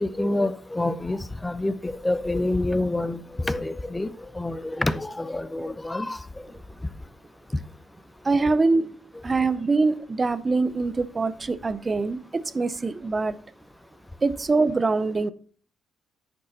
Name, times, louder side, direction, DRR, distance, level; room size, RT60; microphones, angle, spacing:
voice 1, 0.0-6.2, left 2 dB, 15° left, 0.6 m, -27 dB
voice 2, 8.2-9.0 9.2-13.4 14.2-15.3, right 3 dB, 30° right, 0.6 m, -24 dB
9.9 x 5.3 x 4.1 m
cardioid pair, 90°, 0 cm